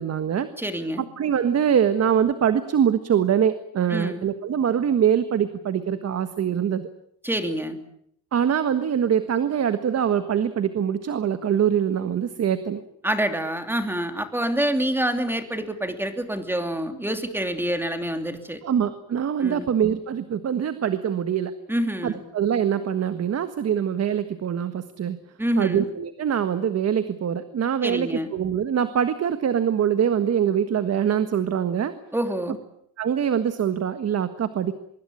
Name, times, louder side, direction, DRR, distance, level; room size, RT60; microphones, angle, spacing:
voice 1, 0.0-0.5 1.2-6.9 8.3-12.8 18.6-21.5 22.0-25.2 25.5-31.9 33.0-34.7, right 8 dB, 45° right, 11 dB, 1.5 m, -23 dB
voice 2, 0.6-1.1 3.9-4.2 7.2-7.8 13.0-18.6 19.4-19.7 21.7-22.2 25.4-25.9 27.8-28.3 32.1-32.6, right 1 dB, 5° right, 7 dB, 3.0 m, -27 dB
24.5 x 23.0 x 8.7 m, 0.71 s
cardioid pair, 145°, 36 cm